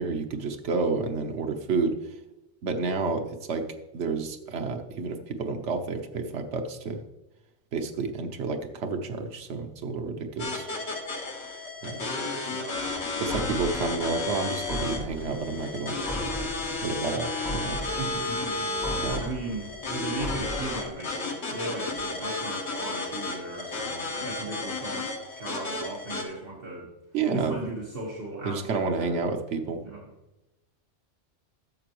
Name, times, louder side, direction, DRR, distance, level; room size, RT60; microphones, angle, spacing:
voice 1, 0.0-1.9 2.6-3.7 3.9-7.0 7.7-10.7 11.8-12.0 13.2-16.0 16.8-17.8 19.0-19.2 27.1-27.5 28.4-29.8, right 4 dB, 85° right, 4 dB, 1.1 m, -30 dB
sound 1, 10.4-26.2, left 3 dB, 70° left, 1.7 m, -33 dB
voice 2, 12.0-13.0 18.0-25.1 25.4-26.9 27.3-29.2 29.8-30.1, right 2 dB, 55° right, -3 dB, 1.6 m, -37 dB
sound 2, 12.7-20.9, equal, ahead, 3.4 m, -38 dB
13.0 x 6.8 x 3.0 m, 0.99 s
omnidirectional pair, 1.2 m